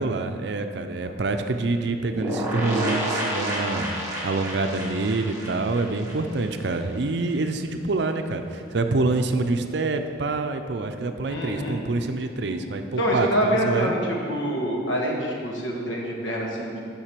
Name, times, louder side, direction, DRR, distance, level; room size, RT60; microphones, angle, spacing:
voice 1, 0.0-13.9, right 3 dB, 60° right, 7 dB, 0.5 m, -26 dB
sound 1, 2.2-6.8 7.0-7.1 7.4-7.5, right 1 dB, 15° right, 1.8 m, -29 dB
voice 2, 11.2-11.8 12.5-12.6 13.0-16.7, equal, 75° left, -2 dB, 1.6 m, -26 dB
7.3 x 5.5 x 6.7 m, 2.4 s
head